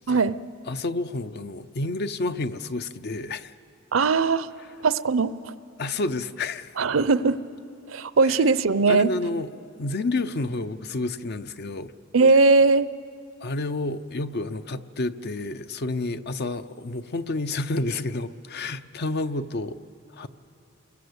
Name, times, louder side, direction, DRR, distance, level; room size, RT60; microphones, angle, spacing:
voice 1, 0.1-0.4 3.9-4.5 4.8-5.5 6.8-7.4 7.9-9.1 12.1-12.9, right 4 dB, 70° right, 16 dB, 0.6 m, -20 dB
voice 2, 0.7-3.5 5.8-6.8 8.2-8.4 8.9-9.5 9.8-11.9 13.4-19.8 20.1-20.3, left 2 dB, 55° left, 12 dB, 0.7 m, -29 dB
29.0 x 21.5 x 8.1 m, 2.7 s
head